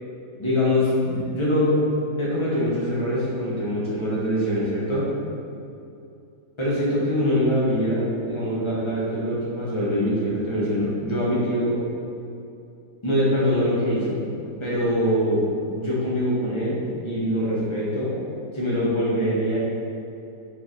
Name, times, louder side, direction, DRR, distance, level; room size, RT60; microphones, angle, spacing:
voice 1, 0.4-1.8 2.2-5.1 6.6-11.8 13.0-14.2 14.6-18.1 18.5-19.6, equal, 25° left, -7 dB, 0.7 m, -23 dB
4.7 x 2.8 x 3.8 m, 2.7 s
omnidirectional pair, 1.9 m